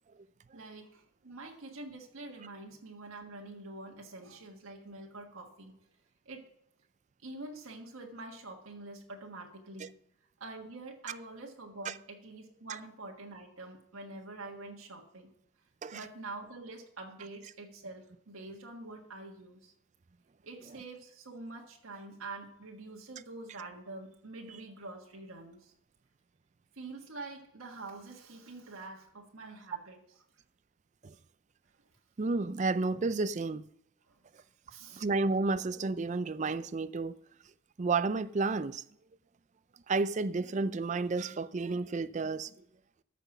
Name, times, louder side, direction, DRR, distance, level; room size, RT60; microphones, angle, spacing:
voice 1, 0.5-5.8 6.2-6.4 7.2-9.9 10.4-15.3 15.9-19.7 20.4-25.7 26.7-30.2 34.1-34.2 34.7-35.0, right 2 dB, 85° right, 1.6 m, -46 dB
voice 2, 32.2-33.6 35.0-37.2 37.8-38.8 39.9-42.5, right 3 dB, 35° right, 0.4 m, -31 dB
13.5 x 6.0 x 6.0 m
head